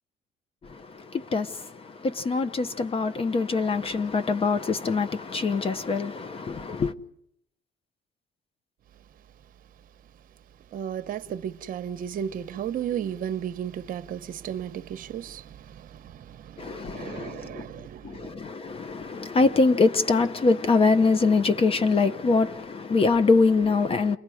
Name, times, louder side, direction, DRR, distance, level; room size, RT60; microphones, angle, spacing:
voice 1, 0.6-6.9 16.6-17.7 18.0-24.2, left 4 dB, 35° left, 0.9 m, -24 dB
voice 2, 10.7-18.4, right 9 dB, 55° right, 1.0 m, -34 dB
29.0 x 21.0 x 4.9 m
cardioid pair, 110°, 17 cm